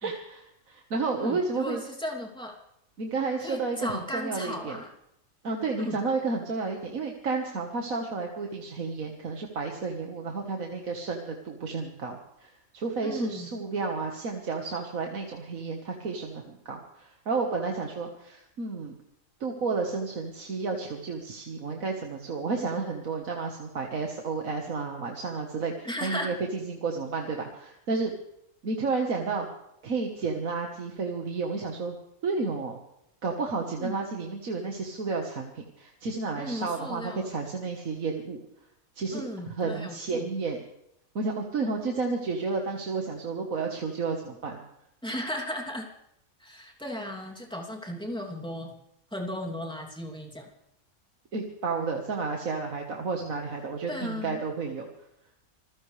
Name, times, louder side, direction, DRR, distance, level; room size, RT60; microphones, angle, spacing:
voice 1, 0.0-1.8 3.0-4.8 5.4-18.9 19.4-28.1 28.6-29.5 29.8-32.0 32.2-32.8 33.2-38.4 39.0-40.6 41.2-44.6 51.3-54.9, right 4 dB, 70° right, 2 dB, 1.9 m, -31 dB
voice 2, 1.2-2.5 3.4-4.9 5.8-6.0 13.0-13.5 25.8-26.3 33.8-34.0 36.4-37.3 39.1-40.3 45.0-45.9 46.4-48.7 49.1-50.5 53.9-54.4, equal, 5° left, -1 dB, 2.8 m, -36 dB
26.5 x 15.5 x 3.3 m, 0.80 s
omnidirectional pair, 1.5 m